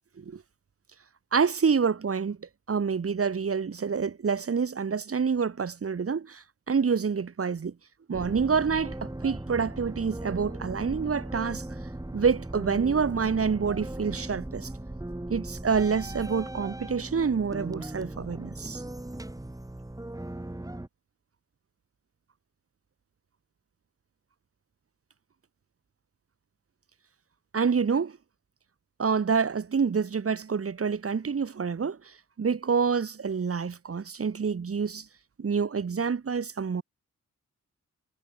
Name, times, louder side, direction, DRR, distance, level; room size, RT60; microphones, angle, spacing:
voice 1, 1.3-7.7 8.1-11.7 12.1-14.7 15.3-18.8 27.5-28.2 29.0-35.1 35.4-36.8, right 6 dB, 50° right, 2.4 m, -27 dB
sound 1, 8.1-20.9, right 1 dB, 10° right, 5.0 m, -38 dB
cardioid pair, 90°, 30 cm